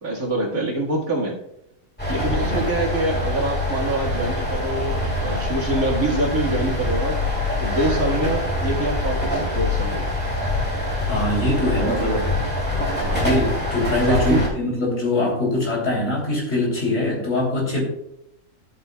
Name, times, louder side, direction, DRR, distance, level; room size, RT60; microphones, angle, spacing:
voice 1, 0.0-1.4 2.1-7.2 7.6-10.1 11.7-12.2 13.0-13.3 14.1-14.5, right 2 dB, 80° right, -3 dB, 2.3 m, -25 dB
sound 1, 2.0-14.5, left 2 dB, 5° left, 2.3 m, -24 dB
voice 2, 11.1-12.3 13.1-17.8, left 2 dB, 60° left, -3 dB, 3.6 m, -23 dB
14.0 x 7.9 x 2.3 m, 0.79 s
omnidirectional pair, 1.4 m